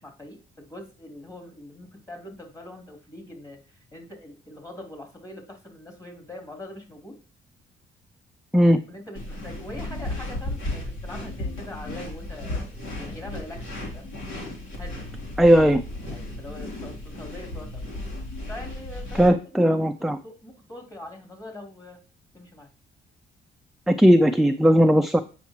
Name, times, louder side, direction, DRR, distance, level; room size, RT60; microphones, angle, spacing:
voice 1, 0.0-7.2 8.9-14.1 14.8-15.1 16.1-17.8 18.5-19.3 19.7-22.0 22.3-22.7, left 1 dB, 15° left, 2 dB, 3.2 m, -42 dB
sound 1, 9.2-19.3, left 1 dB, 75° left, 3.2 m, -34 dB
voice 2, 15.4-15.8 19.2-20.2 23.9-25.2, equal, ahead, 6 dB, 0.5 m, -17 dB
8.4 x 5.8 x 2.9 m, 0.35 s
cardioid pair, 90°, 20 cm